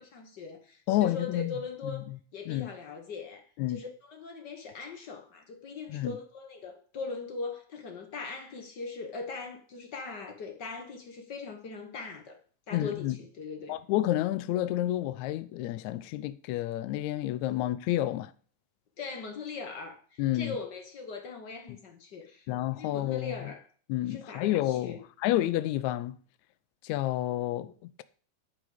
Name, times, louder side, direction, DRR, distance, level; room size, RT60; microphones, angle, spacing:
voice 1, 0.1-2.0 2.3-12.4 12.7-13.8 17.5-17.6 19.0-22.5 22.7-23.6 24.1-25.0, left 4 dB, 55° left, 1.1 m, -40 dB
voice 2, 0.9-1.5 1.8-2.2 2.5-2.7 3.6-3.8 5.9-6.1 12.7-13.2 13.7-18.3 20.2-20.5 22.5-23.5 23.9-26.2 26.8-28.0, left 14 dB, 75° left, 1.8 m, -30 dB
10.5 x 5.0 x 8.0 m
omnidirectional pair, 3.7 m